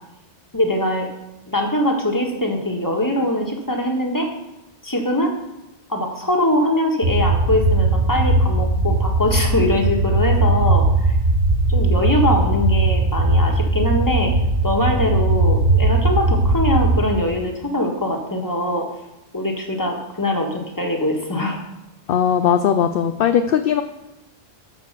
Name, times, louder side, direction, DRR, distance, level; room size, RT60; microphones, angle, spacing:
voice 1, 0.5-1.1 1.5-4.3 4.8-5.3 5.9-11.1 11.7-14.3 14.6-18.9 19.3-21.6, left 1 dB, 15° left, 1 dB, 1.6 m, -22 dB
sound 1, 7.0-17.0, right 2 dB, 85° right, 1.6 m, -18 dB
voice 2, 22.1-23.8, left 8 dB, 60° left, 8 dB, 0.6 m, -18 dB
12.0 x 5.0 x 6.7 m, 0.90 s
omnidirectional pair, 1.2 m